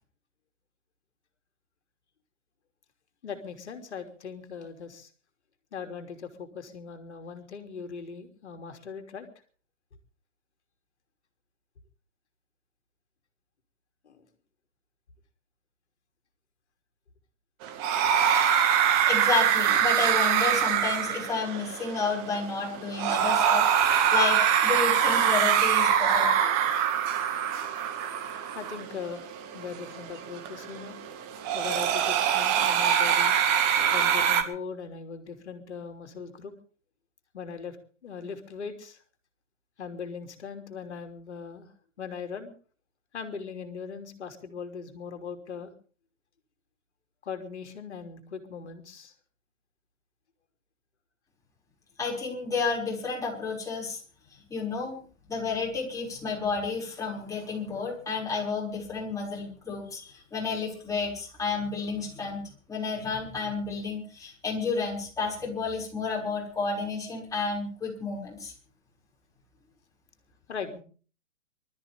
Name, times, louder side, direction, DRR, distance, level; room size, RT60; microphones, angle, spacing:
voice 1, 3.2-5.1 5.7-9.3 14.0-14.2 28.5-29.3 29.5-31.0 31.5-33.3 33.9-36.5 37.3-37.8 38.0-39.0 39.8-41.7 42.0-42.5 43.1-45.7 47.2-49.1 70.5-70.8, left 6 dB, 60° left, 6 dB, 3.1 m, -39 dB
sound 1, 17.6-34.4, right 8 dB, 30° right, 2.1 m, -24 dB
voice 2, 19.1-26.3 52.0-54.0 54.3-55.0 55.3-62.4 62.7-68.5, left 4 dB, 10° left, -3 dB, 6.2 m, -31 dB
25.5 x 13.5 x 3.6 m, 0.41 s
figure-of-eight pair, 120°, 38 cm